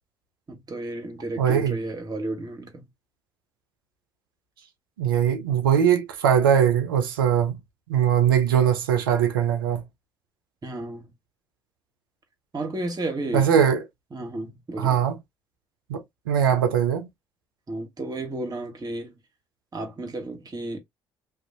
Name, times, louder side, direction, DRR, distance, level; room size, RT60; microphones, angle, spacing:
voice 1, 0.5-2.9 10.6-11.1 12.5-13.5 14.1-15.0 17.7-19.1 19.7-20.8, right 2 dB, 35° right, 1.2 m, -32 dB
voice 2, 1.4-1.8 5.0-7.6 7.9-9.8 13.3-13.8 14.8-15.2 15.9-17.1, right 8 dB, 90° right, 0.5 m, -21 dB
2.5 x 2.3 x 2.6 m
hypercardioid pair, 50°, 11 cm